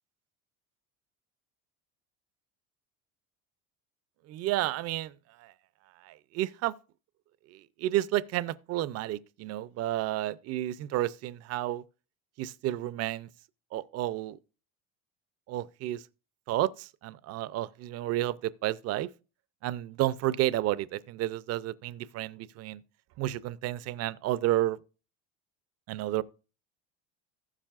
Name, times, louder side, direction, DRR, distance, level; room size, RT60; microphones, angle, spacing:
voice 1, 4.3-5.1 5.4-5.5 6.0-6.7 7.5-11.8 12.4-13.3 13.7-14.4 15.5-16.0 16.5-19.1 19.6-22.8 23.2-24.8 25.9-26.2, right 14 dB, 45° right, 0.5 m, -31 dB
15.0 x 7.4 x 2.4 m
cardioid pair, 130°, 33 cm